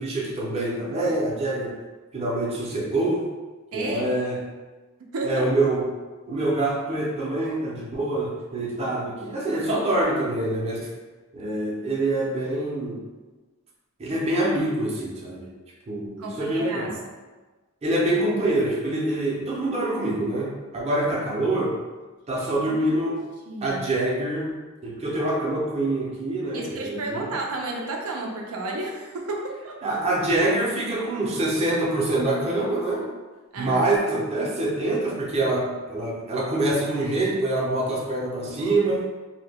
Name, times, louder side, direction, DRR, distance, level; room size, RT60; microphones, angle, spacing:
voice 1, 0.0-1.8 2.1-3.3 3.7-4.4 5.2-5.9 6.3-10.9 11.3-13.0 14.0-15.5 15.9-17.0 17.8-21.8 22.3-23.2 23.6-24.6 24.8-27.3 29.8-33.1 33.6-39.1, right 2 dB, 30° right, -4 dB, 0.5 m, -25 dB
voice 2, 3.7-4.1 5.1-5.5 16.2-16.9 22.8-22.9 23.5-23.8 26.5-30.0 33.5-33.8, right 2 dB, 90° right, 0 dB, 0.4 m, -32 dB
2.1 x 2.1 x 3.3 m, 1.3 s
head